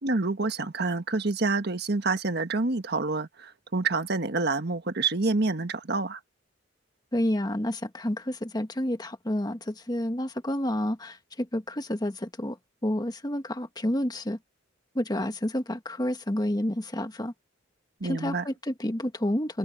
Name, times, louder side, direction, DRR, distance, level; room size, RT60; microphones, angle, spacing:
voice 1, 0.0-6.2 18.0-18.4, right 3 dB, 60° right, 1.5 m, -27 dB
voice 2, 7.1-12.6 12.8-14.4 14.9-17.3 18.0-19.6, left 1 dB, 20° left, 1.5 m, -29 dB
head